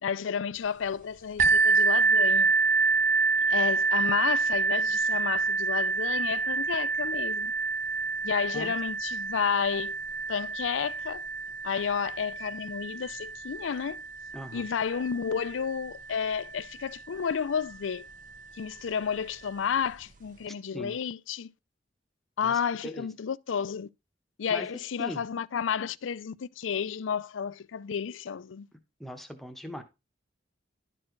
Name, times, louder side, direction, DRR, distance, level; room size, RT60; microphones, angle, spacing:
voice 1, 0.0-2.5 3.5-7.5 8.2-10.0 10.3-11.3 11.6-14.0 14.5-18.1 18.5-21.5 22.4-23.9 24.4-28.7, left 7 dB, 90° left, 0.4 m, -31 dB
sound 1, 1.4-16.9 17.7-17.8 18.4-18.5, right 4 dB, 45° right, 0.7 m, -27 dB
voice 2, 14.3-14.7 20.7-21.0 22.4-23.1 24.5-24.7 25.0-25.2 29.0-29.8, equal, ahead, 1.0 m, -40 dB
11.5 x 4.4 x 4.5 m
head